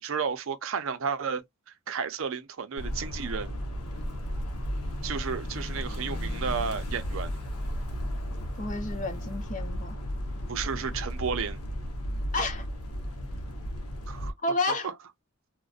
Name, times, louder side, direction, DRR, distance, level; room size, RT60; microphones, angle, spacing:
voice 1, 0.0-1.4 1.9-3.6 5.0-7.3 10.5-11.6 14.1-14.3 14.8-14.9, right 6 dB, 65° right, 0.5 m, -32 dB
sound 1, 2.8-14.3, equal, 90° left, 0.7 m, -34 dB
sound 2, 3.8-9.5, left 2 dB, 10° left, 0.9 m, -50 dB
voice 2, 8.6-10.0 12.3-12.7 14.4-14.9, left 2 dB, 35° left, 0.6 m, -30 dB
2.5 x 2.1 x 2.4 m
head